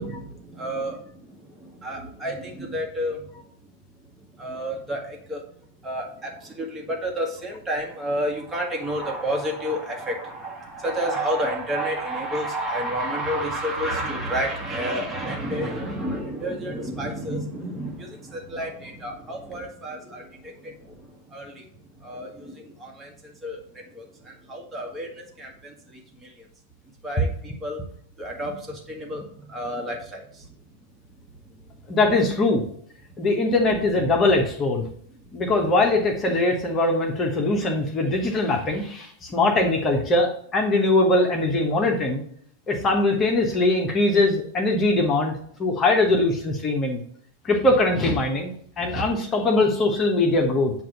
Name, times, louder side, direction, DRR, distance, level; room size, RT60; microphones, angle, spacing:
voice 1, 0.0-3.4 4.4-5.4 5.8-21.6 22.0-26.5 27.0-27.8 28.2-30.5, right 1 dB, 20° right, 1 dB, 1.4 m, -30 dB
voice 2, 31.9-32.6 33.2-34.9 35.3-42.2 42.7-47.0 47.4-50.7, left 2 dB, 25° left, 2 dB, 1.1 m, -21 dB
7.4 x 2.6 x 5.3 m, 0.62 s
figure-of-eight pair, 95°, 0 cm